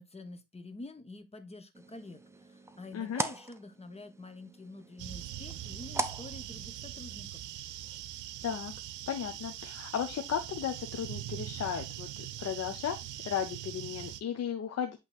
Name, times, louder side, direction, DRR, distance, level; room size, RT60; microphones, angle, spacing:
voice 1, 0.0-7.4, left 2 dB, 20° left, 1.1 m, -47 dB
sound 1, 1.7-7.2, right 2 dB, 10° right, 0.7 m, -41 dB
sound 2, 5.0-14.2, right 13 dB, 90° right, 0.7 m, -42 dB
voice 2, 8.4-8.7 9.1-13.0 13.2-15.0, left 8 dB, 55° left, 0.8 m, -35 dB
8.0 x 3.2 x 4.1 m
cardioid pair, 90°, 30 cm